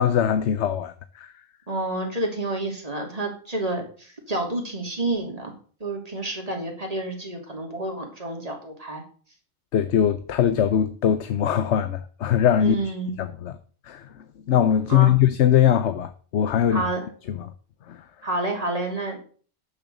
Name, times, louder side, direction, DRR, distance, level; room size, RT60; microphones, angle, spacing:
voice 1, 0.0-1.3 9.7-12.8 13.2-13.5 13.9-14.1 14.5-16.8 17.4-17.5 17.9-18.0, left 9 dB, 80° left, 1.1 m, -21 dB
voice 2, 1.7-5.5 5.8-9.0 12.6-13.1 14.9-15.1 16.7-17.1 18.2-19.2, right 2 dB, 35° right, 3.2 m, -29 dB
10.5 x 7.1 x 7.0 m
omnidirectional pair, 1.2 m